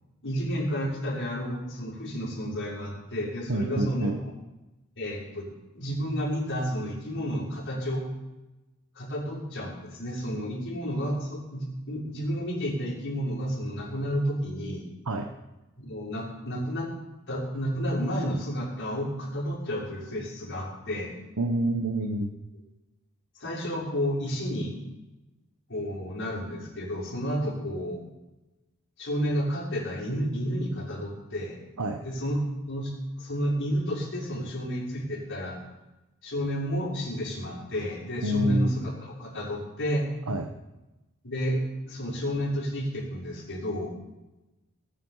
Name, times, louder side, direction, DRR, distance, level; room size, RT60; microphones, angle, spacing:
voice 1, 0.2-4.3 5.0-5.5 5.7-8.0 8.9-14.8 15.8-16.9 17.3-21.1 23.4-24.7 25.7-28.0 29.0-31.6 32.0-32.4 32.7-32.9 33.2-35.6 36.2-40.1 41.2-41.6 41.9-43.9, equal, 55° left, -4 dB, 5.8 m, -31 dB
voice 2, 3.5-4.2 15.1-15.3 21.4-22.3 31.8-32.0 38.2-38.7 40.3-40.5, right 1 dB, 85° right, 5 dB, 1.2 m, -27 dB
20.0 x 9.6 x 5.7 m, 1.0 s
head